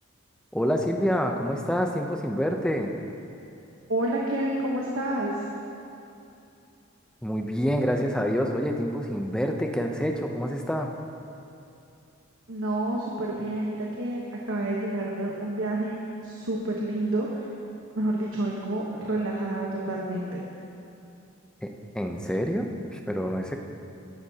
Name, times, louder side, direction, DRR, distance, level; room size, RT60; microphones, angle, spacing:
voice 1, 0.5-2.9 7.2-10.9 21.6-21.7 21.9-23.6, equal, 5° left, 3 dB, 0.6 m, -27 dB
voice 2, 3.9-5.4 12.5-16.0 16.2-17.4 17.9-20.4, right 1 dB, 75° right, -3 dB, 1.1 m, -29 dB
16.5 x 11.0 x 2.8 m, 2.7 s
head